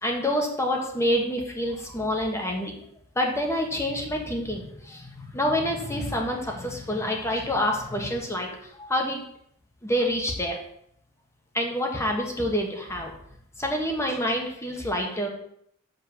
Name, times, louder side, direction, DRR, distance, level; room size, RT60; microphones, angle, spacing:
voice 1, 0.0-2.7 3.1-9.2 9.8-10.6 11.5-13.1 13.6-15.3, equal, 15° left, 1 dB, 1.5 m, -27 dB
6.3 x 5.6 x 7.1 m, 0.71 s
head